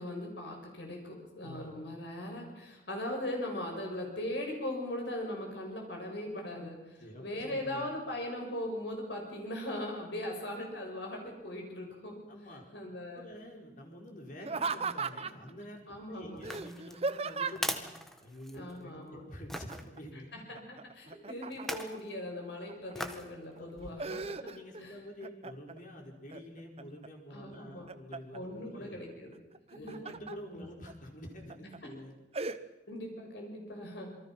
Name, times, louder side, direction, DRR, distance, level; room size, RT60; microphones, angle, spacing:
voice 1, 0.0-12.3 12.7-13.3 15.9-16.4 18.5-19.3 20.3-24.5 24.8-24.9 27.3-27.9 28.3-29.3 29.7-30.1 30.5-30.6 32.9-34.1, left 1 dB, 70° left, 1 dB, 6.8 m, -39 dB
voice 2, 7.0-7.8 12.3-12.6 13.1-17.8 18.2-20.3 23.5-24.0 24.2-29.0 29.7-32.1, equal, 45° left, 1 dB, 4.8 m, -48 dB
Laughter, 14.4-15.5 16.4-17.8 19.5-20.0 20.3-21.9 22.5-23.1 23.6-24.8 25.2-25.8 26.3-27.1 27.5-28.4 29.5-30.4 30.9-31.0 31.5-31.8 32.3-32.6, right 4 dB, 35° right, 1.0 m, -37 dB
sound 1, 16.4-18.8 19.5-19.8 21.5-22.0 22.9-23.3 23.8-23.9, equal, ahead, 1.6 m, -39 dB
28.0 x 23.5 x 6.0 m, 1.0 s
head